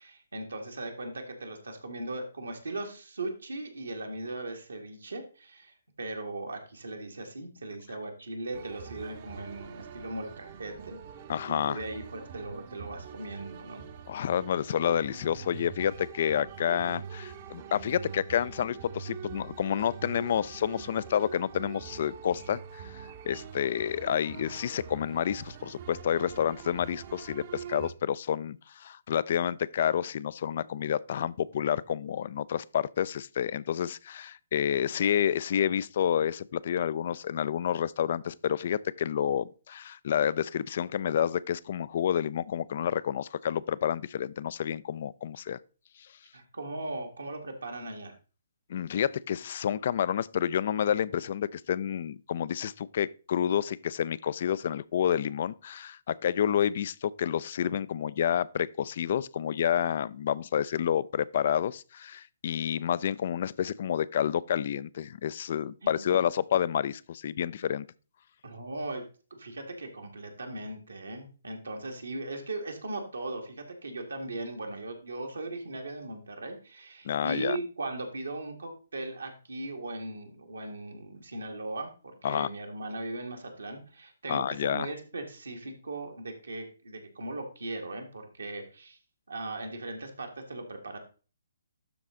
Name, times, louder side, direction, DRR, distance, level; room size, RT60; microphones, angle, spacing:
voice 1, 0.0-11.0 11.5-13.9 46.3-48.1 65.8-66.2 68.4-69.0 69.3-89.0 89.3-91.0, right 2 dB, 75° right, 1.9 m, -38 dB
sound 1, 8.5-27.9, right 7 dB, 40° right, 0.9 m, -44 dB
voice 2, 11.3-11.8 14.1-45.6 48.7-67.9 77.0-77.6 82.2-82.5 84.3-84.9, left 9 dB, 50° left, 0.4 m, -29 dB
12.0 x 4.1 x 3.7 m
figure-of-eight pair, 135°, 0 cm